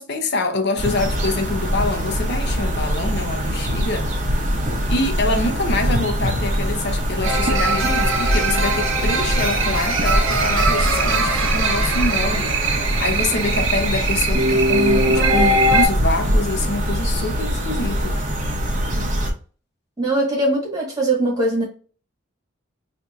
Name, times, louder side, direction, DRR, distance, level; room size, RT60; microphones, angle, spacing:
voice 1, 0.0-4.1 4.9-12.7 13.0-18.2, left 2 dB, 55° left, 0.7 m, -25 dB
sound 1, 0.8-19.3, equal, 35° right, 0.7 m, -23 dB
sound 2, 7.2-15.9, right 2 dB, 75° right, 0.9 m, -21 dB
voice 2, 20.0-21.6, right 2 dB, 20° right, 1.5 m, -21 dB
4.2 x 2.6 x 2.4 m
head